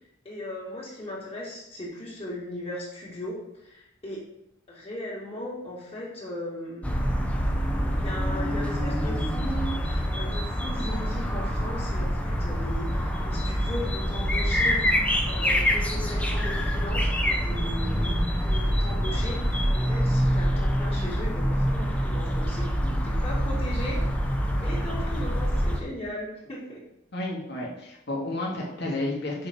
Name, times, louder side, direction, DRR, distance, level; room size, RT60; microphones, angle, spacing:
voice 1, 0.2-4.2 4.7-6.9 7.9-14.8 15.3-26.8, equal, 30° left, -4 dB, 2.6 m, -38 dB
sound 1, 6.8-25.8, equal, 5° left, 0.8 m, -26 dB
voice 2, 27.1-29.5, left 2 dB, 60° left, -3 dB, 2.2 m, -31 dB
6.8 x 5.3 x 4.5 m, 0.82 s
head